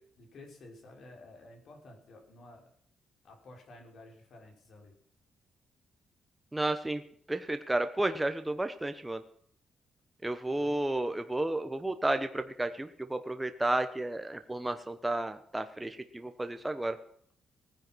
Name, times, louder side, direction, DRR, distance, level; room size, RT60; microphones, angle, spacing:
voice 1, 0.2-2.7 3.2-4.9 10.5-10.8, left 2 dB, 55° left, 2 dB, 5.7 m, -52 dB
voice 2, 6.5-7.0 7.3-9.2 10.2-17.0, right 2 dB, 10° right, 8 dB, 1.0 m, -32 dB
18.5 x 10.5 x 6.2 m, 0.62 s
cardioid pair, 140°, 0 cm